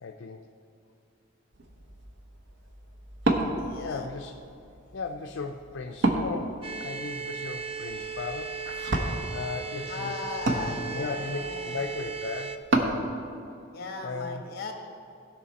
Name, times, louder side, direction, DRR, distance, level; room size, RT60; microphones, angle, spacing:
voice 1, 0.0-0.5 3.8-4.3 4.9-8.6 9.3-10.6 10.9-13.0 14.0-14.4, left 4 dB, 70° left, 3 dB, 0.5 m, -36 dB
Wood, 1.5-13.0, right 1 dB, 60° right, 1.0 m, -32 dB
voice 2, 3.6-4.1 9.8-11.8 13.7-14.7, left 4 dB, 50° left, 2 dB, 1.4 m, -37 dB
sound 1, 6.6-12.6, right 5 dB, 30° right, 0.5 m, -36 dB
16.5 x 5.7 x 4.1 m, 2.6 s
head